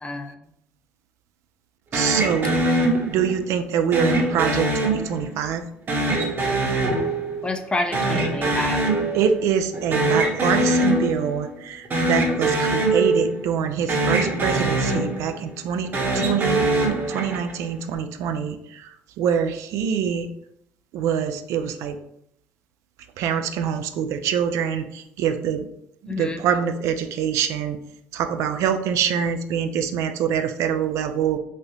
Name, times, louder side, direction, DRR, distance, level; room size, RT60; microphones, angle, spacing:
voice 1, 0.0-0.4 7.4-8.8 26.1-26.4, left 2 dB, 20° left, 6 dB, 0.5 m, -28 dB
sound 1, 1.9-3.4 3.9-5.5 5.9-7.7 7.9-9.5 9.7-11.4 11.8-13.6 13.9-15.5 15.9-17.6, right 2 dB, 40° right, 0.9 m, -23 dB
voice 2, 1.9-2.6 3.1-5.6 9.1-20.3 20.9-22.0 23.2-25.7 26.0-27.8 28.1-31.4, right 8 dB, 70° right, 8 dB, 0.3 m, -25 dB
3.3 x 2.5 x 2.7 m, 0.75 s
supercardioid pair, 75°, 5 cm